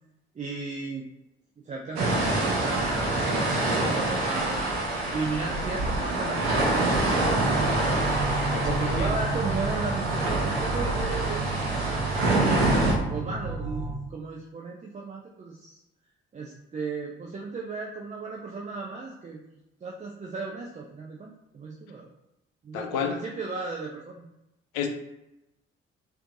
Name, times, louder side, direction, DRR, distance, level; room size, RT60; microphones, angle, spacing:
voice 1, 0.3-1.1 1.6-3.4 3.6-4.8 5.1-7.5 8.6-15.8 16.3-22.1 22.6-24.2, right 4 dB, 25° right, -2 dB, 0.5 m, -35 dB
sound 1, 2.0-12.9, right 2 dB, 80° right, 0.7 m, -26 dB
sound 2, 7.2-14.0, right 3 dB, 60° right, 1.0 m, -31 dB
voice 2, 8.4-9.1 22.7-23.1 24.7-24.9, left 9 dB, 65° left, 5 dB, 0.5 m, -31 dB
4.3 x 2.6 x 2.6 m, 0.90 s
figure-of-eight pair, 40°, 31 cm